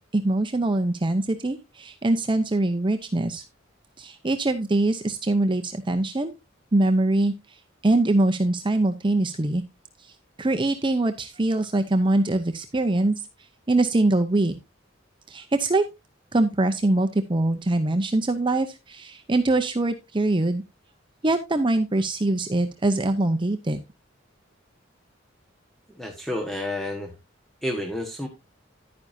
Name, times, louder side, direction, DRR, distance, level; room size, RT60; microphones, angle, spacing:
voice 1, 0.1-3.4 4.0-6.3 6.7-7.3 7.8-9.6 10.4-13.2 13.7-14.5 15.3-15.8 16.3-20.6 21.2-23.8, right 2 dB, 25° right, 8 dB, 0.7 m, -23 dB
voice 2, 25.9-27.1 27.6-28.3, left 1 dB, ahead, 1 dB, 1.4 m, -30 dB
11.0 x 9.6 x 2.7 m, 0.24 s
head